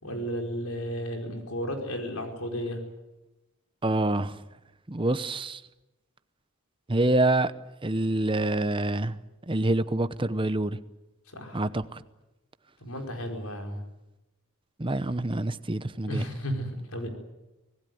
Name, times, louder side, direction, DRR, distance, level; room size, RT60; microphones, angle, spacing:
voice 1, 0.0-2.8 11.3-11.7 12.8-13.8 16.0-17.1, equal, 80° left, 4 dB, 4.8 m, -33 dB
voice 2, 3.8-4.4 4.9-5.6 6.9-7.5 7.8-9.1 9.5-10.8 11.5-12.0 14.8-16.2, right 2 dB, 25° right, 13 dB, 0.8 m, -26 dB
25.5 x 18.5 x 9.4 m, 0.99 s
head